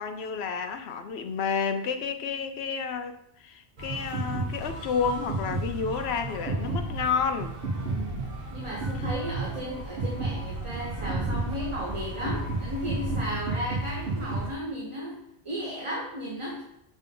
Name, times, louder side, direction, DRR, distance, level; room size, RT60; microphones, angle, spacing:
voice 1, 0.0-7.6, left 6 dB, 80° left, 8 dB, 0.9 m, -30 dB
sound 1, 3.8-14.5, right 2 dB, 65° right, 1.3 m, -32 dB
voice 2, 7.9-16.6, equal, 30° right, -4 dB, 1.1 m, -35 dB
6.2 x 5.3 x 3.8 m, 0.76 s
omnidirectional pair, 1.1 m